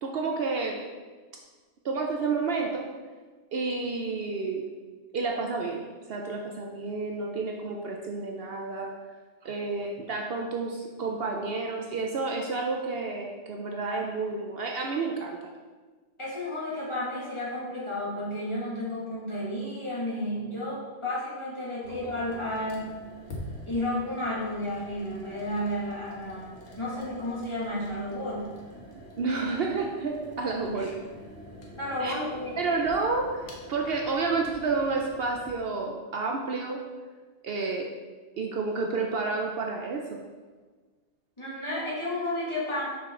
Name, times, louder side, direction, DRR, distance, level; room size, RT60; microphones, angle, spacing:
voice 1, 0.0-0.8 1.8-2.9 3.5-4.7 5.1-8.9 9.4-15.5 21.9-22.1 29.2-31.0 32.0-32.1 32.6-36.8 37.4-37.9 38.4-40.2, right 4 dB, 60° right, 1 dB, 0.8 m, -30 dB
voice 2, 16.2-22.9 23.7-28.5 30.7-30.9 31.8-32.5 41.4-42.9, left 1 dB, 25° left, -8 dB, 2.0 m, -32 dB
sound 1, 21.8-35.5, equal, 90° left, 1.5 m, -46 dB
5.8 x 5.8 x 3.7 m, 1.4 s
omnidirectional pair, 1.2 m